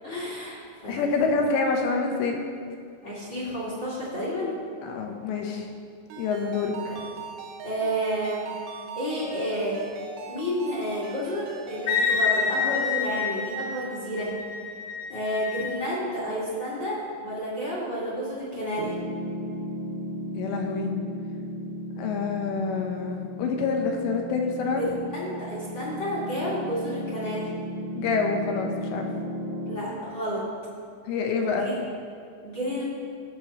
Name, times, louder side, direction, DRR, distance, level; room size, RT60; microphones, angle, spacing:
voice 1, 0.0-1.1 3.0-4.5 6.9-7.0 7.6-8.5 8.9-9.8 10.3-14.3 15.1-19.0 24.8-27.5 29.6-30.4 31.5-31.8 32.4-32.8, equal, 40° left, -8 dB, 1.7 m, -30 dB
voice 2, 0.9-2.4 4.8-5.7 6.2-6.7 20.4-20.9 22.0-24.9 27.9-29.1 31.1-31.7, left 4 dB, 80° left, 2 dB, 3.2 m, -27 dB
Ringtone, 6.1-13.0, right 4 dB, 90° right, 3.3 m, -41 dB
Wind instrument woodwind instrument, 11.9-15.7, left 6 dB, 60° left, 2.1 m, -28 dB
Piano, 18.8-29.8, equal, 60° right, 1.7 m, -35 dB
18.0 x 6.9 x 3.0 m, 2.3 s
omnidirectional pair, 5.3 m